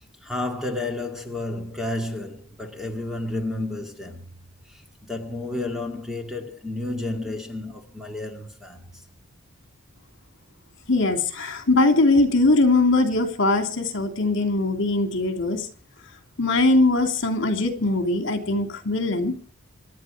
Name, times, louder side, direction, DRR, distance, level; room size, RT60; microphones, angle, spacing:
voice 1, 0.2-4.3 4.7-8.9, left 2 dB, ahead, 1.9 m, -31 dB
voice 2, 10.9-15.7 16.4-19.3, left 2 dB, 60° left, 2.9 m, -21 dB
26.0 x 11.0 x 5.0 m
head